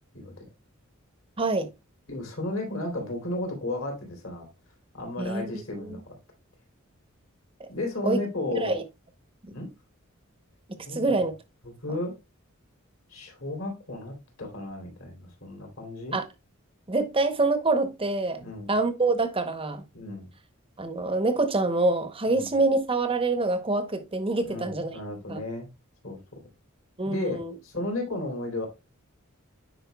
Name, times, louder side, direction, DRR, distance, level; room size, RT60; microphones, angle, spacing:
voice 1, 0.1-0.4 2.1-4.5 4.9-6.1 7.7-8.7 9.5-9.7 10.8-11.3 11.6-12.2 13.1-16.2 18.4-18.7 19.9-20.3 22.3-22.5 24.4-25.7 26.0-26.4 27.0-28.7, left 2 dB, 70° left, 3.0 m, -34 dB
voice 2, 1.4-1.7 5.2-5.6 7.6-7.7 8.0-8.2 8.6-8.8 9.4-9.5 10.9-11.3 16.1-16.2 16.9-19.8 20.8-25.0 25.3-25.4 27.0-27.5, right 2 dB, 25° right, 0.8 m, -26 dB
9.1 x 5.1 x 2.3 m
head